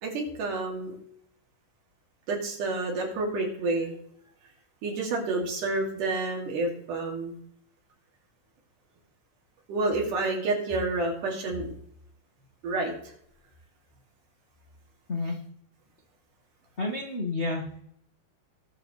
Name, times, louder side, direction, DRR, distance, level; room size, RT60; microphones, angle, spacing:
voice 1, 0.0-1.0 2.3-4.0 4.8-7.4 9.7-11.7 12.6-12.9, right 2 dB, 75° right, 0 dB, 4.0 m, -29 dB
voice 2, 16.8-17.8, left 2 dB, 60° left, -2 dB, 0.7 m, -30 dB
19.5 x 6.9 x 3.2 m, 0.70 s
omnidirectional pair, 3.7 m